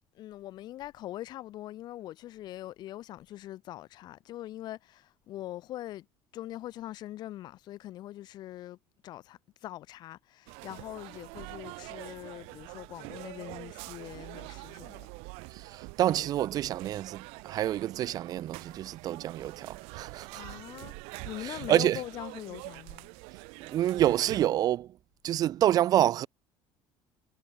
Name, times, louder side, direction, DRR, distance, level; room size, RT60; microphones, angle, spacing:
voice 1, 0.1-6.0 6.3-8.8 9.0-15.1 20.4-20.9 21.2-23.1, left 14 dB, 45° left, 1.2 m, -42 dB
sound 1, 10.5-24.5, right 32 dB, 90° right, 2.2 m, -45 dB
voice 2, 15.5-20.4 21.4-22.0 23.6-24.9 25.2-26.3, right 12 dB, 40° right, 0.8 m, -28 dB
cardioid pair, 170°, 10 cm